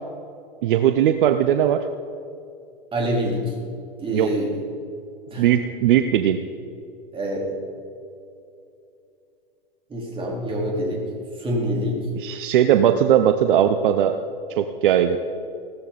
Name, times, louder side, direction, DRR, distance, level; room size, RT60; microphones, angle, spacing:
voice 1, 0.6-1.9 4.1-4.3 5.4-6.4 12.2-14.2 14.6-15.2, right 10 dB, 60° right, 9 dB, 0.8 m, -19 dB
voice 2, 2.9-3.4 4.0-4.5 5.3-5.5 7.1-7.5 9.9-11.1 11.4-12.1, equal, 15° right, -3 dB, 3.8 m, -25 dB
16.0 x 13.5 x 4.1 m, 2.6 s
hypercardioid pair, 105°, 30 cm